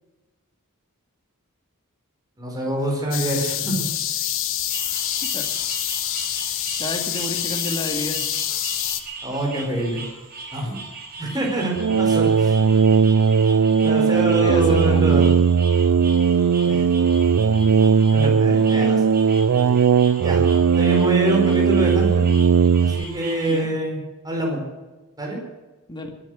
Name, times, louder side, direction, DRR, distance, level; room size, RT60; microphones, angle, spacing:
voice 1, 2.4-3.8 9.2-10.0 10.5-10.8 11.2-12.5 13.8-15.3 16.6-16.8 18.1-19.0 20.2-22.2 22.8-24.0 24.2-24.6 25.2-25.4, right 1 dB, 20° right, -1 dB, 4.7 m, -25 dB
sound 1, 3.1-9.0, left 11 dB, 65° left, 1.4 m, -26 dB
sound 2, 4.7-23.6, right 3 dB, 45° right, 5.1 m, -38 dB
voice 2, 6.8-8.2 14.1-15.3 23.5-23.7 25.9-26.1, left 1 dB, 20° left, 3 dB, 2.3 m, -31 dB
sound 3, 11.8-23.0, right 6 dB, 80° right, 0.5 m, -18 dB
21.5 x 9.9 x 6.5 m, 1.1 s
head